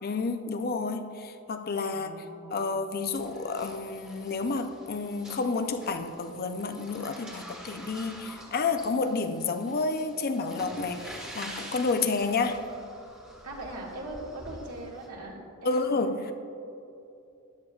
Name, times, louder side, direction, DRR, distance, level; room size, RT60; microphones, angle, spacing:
voice 1, 0.0-2.1 2.5-12.6 15.6-16.3, left 4 dB, 45° left, 8 dB, 0.5 m, -30 dB
voice 2, 1.9-2.7 13.4-16.0, right 1 dB, 85° right, -2 dB, 1.9 m, -40 dB
sound 1, 3.1-15.1, equal, 5° right, 1.3 m, -46 dB
14.0 x 10.5 x 2.4 m, 2.7 s
head